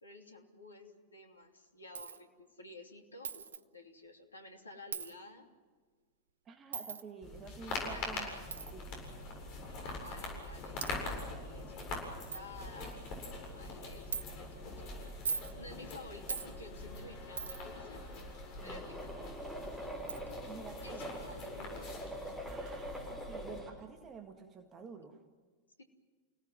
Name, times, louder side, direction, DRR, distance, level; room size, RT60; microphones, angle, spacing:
voice 1, 0.0-3.5 3.7-5.5 7.8-8.4 9.8-13.1 13.4-18.0 18.6-19.1 20.8-22.1 25.8-25.9, left 2 dB, 75° left, 4 dB, 3.1 m, -52 dB
Coin (dropping), 1.9-2.2 3.2-3.6 4.9-5.1 6.7-7.0 8.5-8.7 9.7-9.8 10.4-10.5 10.8-11.0 11.6-11.7 12.0-12.1 12.3-12.4 12.9-13.2 14.1-14.2 15.1-15.5 16.3-16.5 17.4-17.7 19.4-19.5 20.1-20.2, right 6 dB, 70° right, 1.0 m, -39 dB
voice 2, 6.5-8.3 8.7-8.9 18.6-18.9 20.5-21.2 22.5-25.2, right 5 dB, 25° right, 5 dB, 2.0 m, -49 dB
sound 1, 7.2-23.6, left 2 dB, 40° left, 7.7 m, -44 dB
sound 2, 18.6-23.7, equal, ahead, 6.8 m, -44 dB
30.0 x 18.0 x 9.5 m, 1.5 s
figure-of-eight pair, 90°, 0 cm